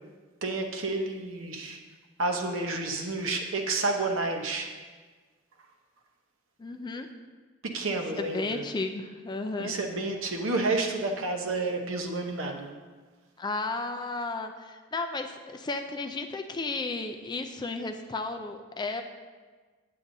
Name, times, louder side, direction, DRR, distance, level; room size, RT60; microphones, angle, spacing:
voice 1, 0.4-1.8 2.2-4.7 7.6-8.6 9.6-12.7, right 3 dB, 70° right, 3 dB, 0.9 m, -30 dB
voice 2, 6.6-7.1 8.2-9.7 13.4-19.0, left 3 dB, 20° left, 6 dB, 0.3 m, -33 dB
8.7 x 8.5 x 2.6 m, 1.4 s
head